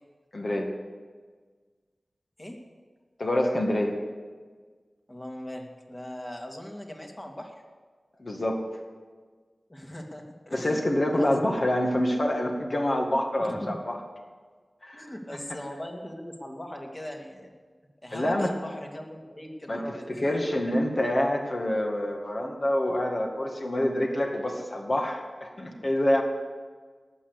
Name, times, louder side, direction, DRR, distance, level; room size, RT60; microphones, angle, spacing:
voice 1, 0.3-0.7 3.2-4.0 8.2-8.6 10.5-14.0 14.8-15.1 18.1-18.5 19.7-19.8 20.2-26.2, left 1 dB, 50° left, 2 dB, 2.0 m, -26 dB
voice 2, 5.1-7.5 9.7-10.8 11.1-11.6 13.4-13.8 14.9-17.5 18.0-20.6 25.8-25.9, left 1 dB, 30° left, 2 dB, 2.5 m, -40 dB
18.0 x 6.9 x 8.3 m, 1.5 s
cardioid pair, 50°, 0 cm